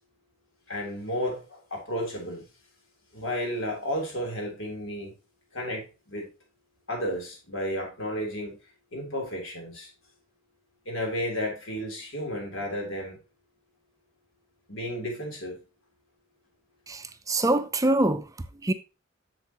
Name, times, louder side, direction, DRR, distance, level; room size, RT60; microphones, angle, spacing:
voice 1, 0.7-2.4 3.1-5.1 5.5-6.3 6.9-8.6 8.9-9.9 10.9-13.2 14.7-15.6, equal, 80° left, 3.5 m, -32 dB
voice 2, 16.9-18.2 18.6-18.7, right 2 dB, 15° right, 0.5 m, -24 dB
8.1 x 6.9 x 2.9 m
head